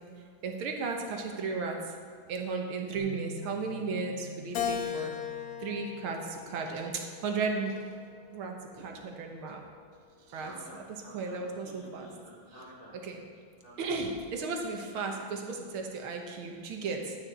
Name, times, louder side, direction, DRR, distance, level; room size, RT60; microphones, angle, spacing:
voice 1, 0.4-2.0 2.3-5.1 5.6-7.8 8.3-9.6 10.3-10.8 11.1-12.1 13.0-13.2 13.8-17.2, right 4 dB, 85° right, 2 dB, 1.9 m, -35 dB
Bass guitar, 3.0-9.2, equal, 45° right, 0.7 m, -48 dB
Keyboard (musical), 4.5-7.0 7.6-8.8, left 9 dB, 70° left, 1.0 m, -37 dB
voice 2, 10.3-13.0 13.6-14.0, equal, 45° left, -8 dB, 3.9 m, -50 dB
12.0 x 9.2 x 4.3 m, 2.2 s
omnidirectional pair, 2.3 m